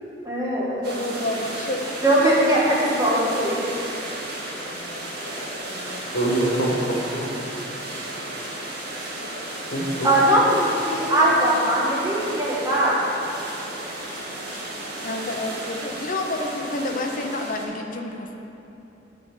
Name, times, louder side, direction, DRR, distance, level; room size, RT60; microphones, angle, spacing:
voice 1, 0.2-0.8 2.0-3.6 10.0-13.0, right 1 dB, 20° right, -7 dB, 1.4 m, -20 dB
voice 2, 0.8-2.0 4.6-5.2 5.7-6.1 15.0-18.3, left 2 dB, 45° left, 3 dB, 0.8 m, -30 dB
sound 1, 0.8-17.6, right 1 dB, 60° right, 1.6 m, -34 dB
voice 3, 6.0-7.3 9.7-10.1 13.7-14.2 14.5-14.7, right 1 dB, 90° left, -3 dB, 1.3 m, -26 dB
9.3 x 4.1 x 7.3 m, 2.9 s
head